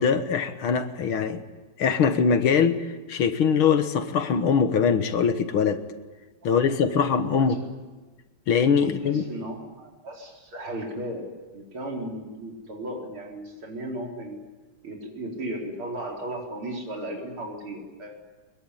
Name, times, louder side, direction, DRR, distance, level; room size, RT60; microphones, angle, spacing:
voice 1, 0.0-1.4 1.8-2.8 3.1-5.8 6.4-7.6 8.5-9.2, left 6 dB, 80° left, 2.2 m, -22 dB
voice 2, 9.0-14.4 14.8-18.2, right 1 dB, 80° right, 5.2 m, -35 dB
23.0 x 22.0 x 9.8 m
omnidirectional pair, 2.3 m